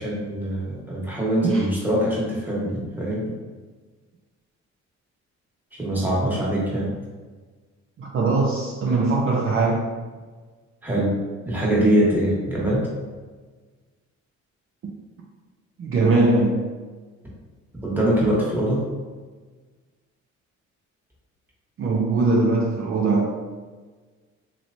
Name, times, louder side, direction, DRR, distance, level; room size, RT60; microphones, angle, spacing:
voice 1, 0.0-3.3 5.7-6.9 10.8-11.1 11.4-12.9 17.8-18.8, right 1 dB, 5° right, -6 dB, 1.2 m, -23 dB
voice 2, 8.0-9.9 15.8-16.6 21.8-23.3, right 3 dB, 45° right, -2 dB, 0.5 m, -21 dB
3.1 x 3.0 x 2.6 m, 1.4 s
cardioid pair, 90°, 30 cm